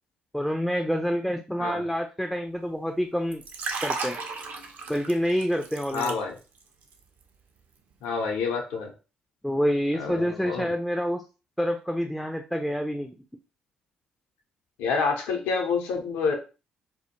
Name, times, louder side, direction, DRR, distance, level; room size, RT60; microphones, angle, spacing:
voice 1, 0.3-3.4 3.8-4.2 4.9-6.2 9.4-11.2 11.6-13.1, equal, ahead, 4 dB, 0.3 m, -27 dB
Liquid, 3.3-6.6 6.9-7.2, right 4 dB, 55° right, 0.5 m, -34 dB
voice 2, 5.9-6.3 8.0-8.9 10.0-10.7 14.8-16.4, left 5 dB, 70° left, 2 dB, 0.6 m, -28 dB
2.2 x 2.1 x 2.9 m, 0.32 s
hypercardioid pair, 45°, 4 cm